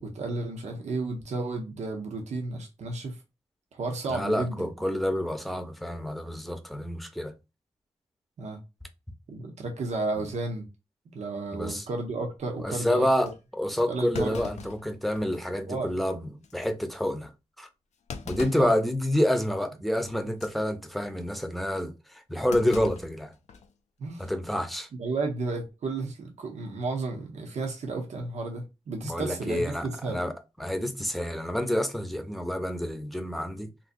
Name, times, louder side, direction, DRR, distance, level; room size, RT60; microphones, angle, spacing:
voice 1, 0.0-3.2 3.7-4.7 8.4-8.6 9.3-10.7 11.1-13.3 13.9-14.4 15.7-15.9 18.6-18.7 24.0-24.3 25.0-30.2, right 3 dB, 85° right, 0.7 m, -33 dB
voice 2, 4.1-7.3 11.5-11.8 12.6-17.3 17.6-17.7 18.2-23.3 24.2-24.9 29.0-30.3 30.6-33.7, left 1 dB, ahead, 0.7 m, -28 dB
Thump thud, 12.4-12.7 13.2-13.4 14.1-15.5 15.9-16.0 16.4-16.7 18.1-18.8 19.2-19.5 20.3-20.6 22.5-23.7 24.0-24.1 25.3-25.6, left 6 dB, 85° left, 0.4 m, -40 dB
3.7 x 2.7 x 2.5 m
cardioid pair, 60°, 11 cm